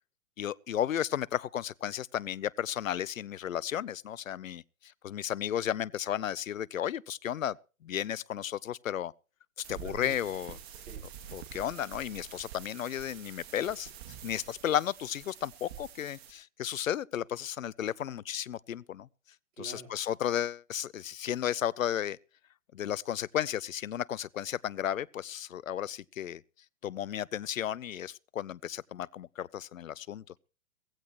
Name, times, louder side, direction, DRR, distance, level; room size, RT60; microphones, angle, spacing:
voice 1, 0.4-7.6 7.8-9.1 9.7-10.6 11.3-13.9 14.2-19.1 19.6-22.2 22.7-26.4 26.8-30.2, left 10 dB, 75° left, 0.7 m, -34 dB
sound 1, 9.6-16.3, right 9 dB, 50° right, 2.5 m, -47 dB
voice 2, 9.7-10.4 10.7-11.1 19.6-19.9, right 3 dB, 70° right, 4.4 m, -47 dB
17.5 x 15.5 x 3.0 m
figure-of-eight pair, 120°, 40 cm